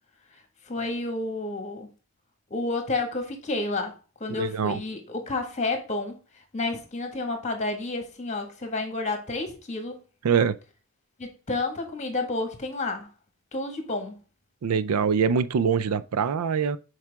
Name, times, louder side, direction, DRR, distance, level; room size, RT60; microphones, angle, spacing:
voice 1, 0.6-1.9 2.5-3.9 4.2-10.0 11.2-13.1 13.5-14.1, left 2 dB, 30° left, 1.6 m, -30 dB
voice 2, 4.3-4.8 10.2-10.6 14.6-16.8, right 6 dB, 85° right, 0.4 m, -24 dB
7.3 x 4.8 x 3.5 m
head